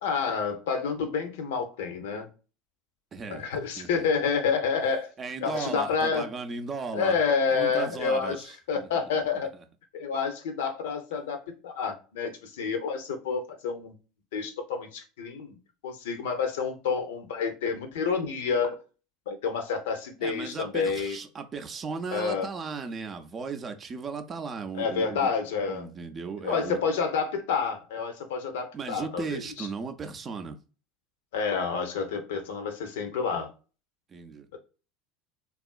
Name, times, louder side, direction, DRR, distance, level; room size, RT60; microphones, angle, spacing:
voice 1, 0.0-2.3 3.3-5.1 5.4-6.3 6.9-9.5 9.9-14.0 14.3-15.6 15.8-18.8 19.3-21.2 22.1-22.5 24.7-25.9 26.4-29.7 31.3-33.5 34.5-34.6, left 5 dB, 65° left, 0.6 m, -29 dB
voice 2, 3.1-3.5 3.8-4.1 5.2-7.2 7.5-8.9 9.3-9.6 20.2-25.3 25.7-26.8 28.7-30.6 34.1-34.5, right 5 dB, 30° right, 0.5 m, -36 dB
3.5 x 2.4 x 2.2 m
figure-of-eight pair, 75°, 0 cm